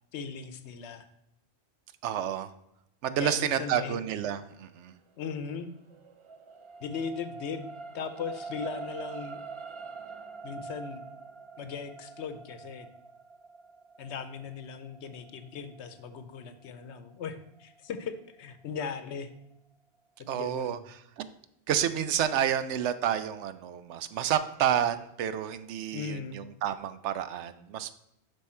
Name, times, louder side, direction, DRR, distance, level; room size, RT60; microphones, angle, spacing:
voice 1, 0.1-1.1 3.2-4.0 5.2-5.7 6.8-7.7 7.9-9.4 10.4-11.1 11.6-12.9 14.0-19.3 20.3-20.8 25.9-26.4, left 6 dB, 80° left, 10 dB, 1.0 m, -38 dB
voice 2, 2.0-2.5 3.0-4.9 20.3-21.3 21.7-27.9, right 9 dB, 85° right, 13 dB, 0.9 m, -30 dB
sound 1, 5.5-18.0 18.5-18.6, right 4 dB, 45° right, 0.4 m, -45 dB
7.6 x 5.4 x 4.3 m, 0.81 s
omnidirectional pair, 1.1 m